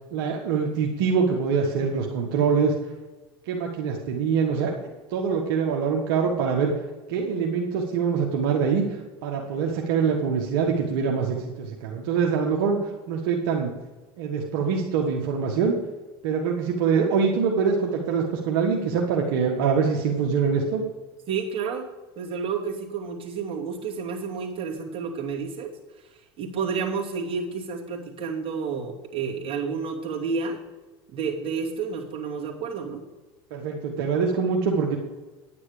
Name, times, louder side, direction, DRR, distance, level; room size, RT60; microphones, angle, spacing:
voice 1, 0.1-2.7 3.5-4.7 5.1-6.7 7.1-8.8 9.2-12.8 13.1-13.7 14.2-15.8 16.2-20.8 33.5-35.0, right 6 dB, 75° right, 1 dB, 1.5 m, -24 dB
voice 2, 21.3-21.8 22.2-25.7 26.4-30.6 31.1-33.0, right 5 dB, 45° right, -1 dB, 2.7 m, -30 dB
10.0 x 9.3 x 5.0 m, 1.2 s
supercardioid pair, 90°, 12 cm